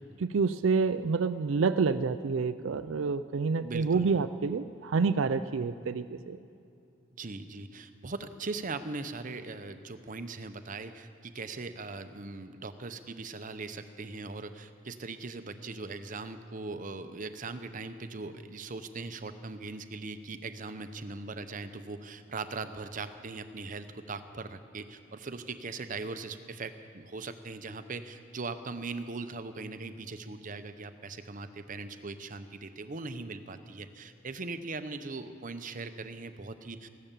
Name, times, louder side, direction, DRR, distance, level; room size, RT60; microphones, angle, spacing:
voice 1, 0.2-6.4, right 4 dB, 80° right, 12 dB, 0.5 m, -28 dB
voice 2, 3.6-4.1 7.2-36.9, right 3 dB, 40° right, 10 dB, 0.7 m, -40 dB
15.5 x 12.0 x 7.4 m, 2.6 s
head